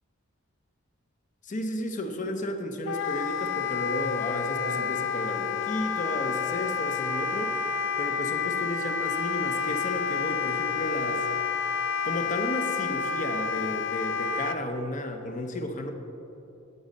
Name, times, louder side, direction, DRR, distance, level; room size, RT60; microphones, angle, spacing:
voice 1, 1.4-7.7 8.0-11.3 12.0-15.9, equal, 40° left, 6 dB, 0.8 m, -33 dB
Wind instrument woodwind instrument, 2.9-14.6, left 6 dB, 65° left, 0.4 m, -29 dB
9.4 x 8.4 x 5.3 m, 2.9 s
head